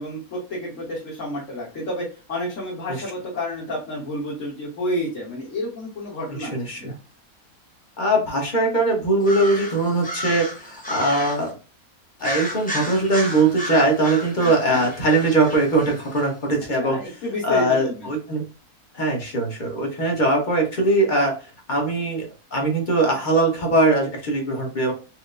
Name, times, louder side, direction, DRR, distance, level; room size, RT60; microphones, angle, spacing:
voice 1, 0.0-7.0 14.4-14.8 16.8-18.1, left 1 dB, 55° left, -6 dB, 1.4 m, -30 dB
voice 2, 6.4-6.9 8.0-11.5 12.2-17.0 17.4-18.4 18.9-21.3 21.7-22.3 22.5-24.9, right 2 dB, 35° left, 1 dB, 0.9 m, -21 dB
sound 1, 9.2-11.5 12.2-16.2, equal, 10° left, 0.6 m, -32 dB
4.3 x 2.1 x 2.4 m, 0.35 s
omnidirectional pair, 1.6 m